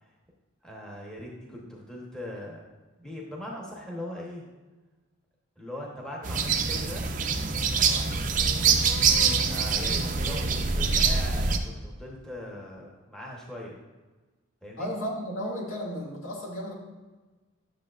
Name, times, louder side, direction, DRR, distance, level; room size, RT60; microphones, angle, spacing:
voice 1, 0.6-2.6 3.0-4.5 5.6-7.0 9.2-13.8 14.6-14.9, left 1 dB, 5° left, -3 dB, 1.0 m, -40 dB
sound 1, 6.2-11.6, right 5 dB, 35° right, 0.5 m, -24 dB
voice 2, 14.8-16.7, equal, 70° left, -3 dB, 2.1 m, -34 dB
10.5 x 6.9 x 2.4 m, 1.2 s
head